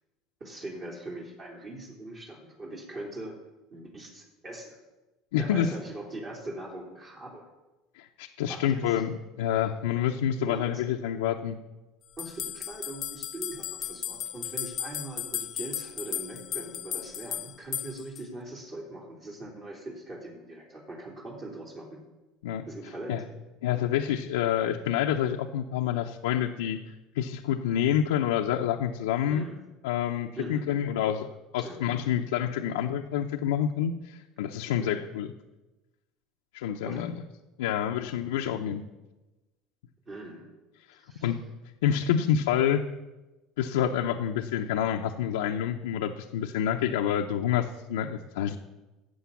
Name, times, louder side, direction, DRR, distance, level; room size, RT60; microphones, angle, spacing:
voice 1, 0.4-3.4 3.7-4.8 5.4-7.5 8.5-9.0 10.5-10.8 12.2-22.0 22.7-23.3 29.2-29.6 30.4-30.8 31.6-31.8 34.8-35.0 36.8-37.1 40.1-40.5 41.0-41.3, right 1 dB, 35° right, -1 dB, 3.2 m, -41 dB
voice 2, 5.3-5.7 8.0-11.6 22.4-22.7 23.1-23.2 23.6-26.8 27.1-29.4 29.8-31.3 31.5-35.3 36.5-37.1 37.6-38.8 41.2-41.4 41.8-42.8 43.6-48.6, left 9 dB, 90° left, 1 dB, 0.6 m, -28 dB
sound 1, 12.2-18.2, left 10 dB, 50° left, 0.5 m, -35 dB
11.5 x 7.9 x 7.0 m, 1.1 s
supercardioid pair, 100°, 0 cm